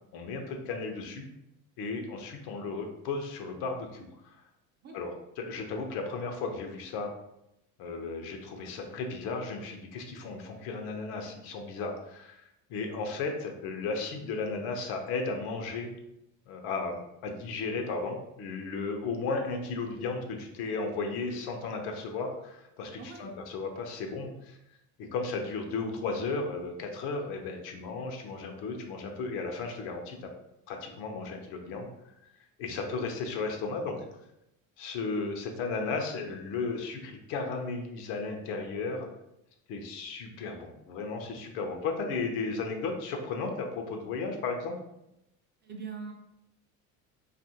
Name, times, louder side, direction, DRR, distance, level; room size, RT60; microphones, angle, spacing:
voice 1, 0.1-1.3 1.8-4.4 4.9-7.1 7.8-12.4 12.7-15.9 16.5-24.6 25.0-30.3 30.7-31.9 32.6-34.0 34.8-39.1 39.7-44.8, left 4 dB, 75° left, 3 dB, 0.7 m, -35 dB
voice 2, 23.0-23.3 45.6-46.1, right 5 dB, 25° right, 2 dB, 0.4 m, -41 dB
2.7 x 2.5 x 2.7 m, 0.84 s
supercardioid pair, 90°, 40 cm